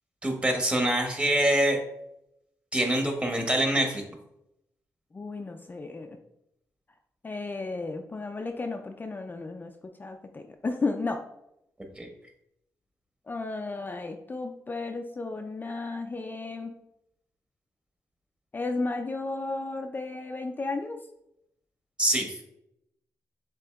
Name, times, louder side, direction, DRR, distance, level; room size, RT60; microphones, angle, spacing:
voice 1, 0.2-1.8 2.7-4.0 11.9-12.1 22.0-22.4, right 1 dB, 15° right, 3 dB, 1.1 m, -25 dB
voice 2, 5.1-6.2 7.2-9.7 10.0-11.2 13.3-16.7 18.5-21.0, left 3 dB, 30° left, 4 dB, 0.4 m, -33 dB
7.0 x 2.9 x 2.2 m, 0.80 s
cardioid pair, 75°, 7 cm